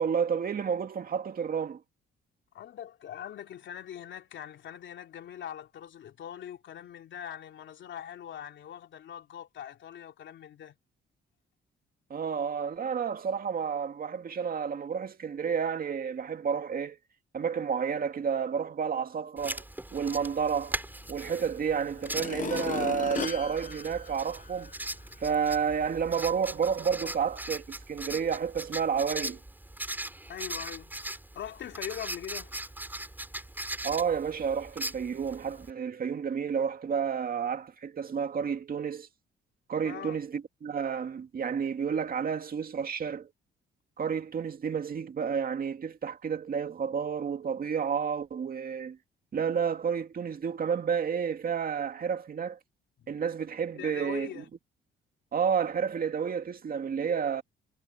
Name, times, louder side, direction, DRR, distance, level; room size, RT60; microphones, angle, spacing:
voice 1, 0.0-1.8 12.1-17.0 17.3-19.6 19.9-20.8 21.1-24.7 25.2-29.4 33.8-39.1 39.7-43.3 44.0-49.0 49.3-52.6 53.1-54.4 55.3-57.4, right 7 dB, 45° right, 2.2 m, -30 dB
voice 2, 2.5-10.7 27.0-27.2 30.3-31.0 31.3-32.5 39.8-40.2 53.0-53.1 53.8-54.5, left 10 dB, 70° left, 3.0 m, -42 dB
Writing, 19.4-35.7, right 1 dB, 10° right, 7.5 m, -40 dB
sound 1, 21.3-21.4 22.0-24.8 25.3-25.4, left 7 dB, 40° left, 1.0 m, -37 dB
cardioid pair, 90°, 20 cm